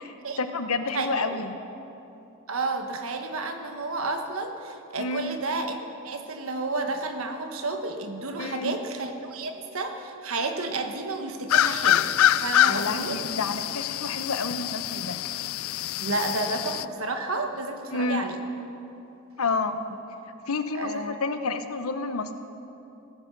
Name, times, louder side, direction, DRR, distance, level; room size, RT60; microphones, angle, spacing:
voice 1, 0.0-1.6 5.0-5.4 8.4-8.8 12.7-15.2 17.9-18.2 19.4-19.8 20.5-22.4, left 3 dB, 90° left, 9 dB, 0.9 m, -30 dB
voice 2, 2.5-5.8 6.0-12.1 12.4-13.2 16.0-18.4 20.7-21.2, right 3 dB, 70° right, 5 dB, 1.3 m, -31 dB
sound 1, 11.5-16.8, left 12 dB, 70° left, 0.3 m, -25 dB
17.5 x 9.6 x 6.6 m, 2.9 s
head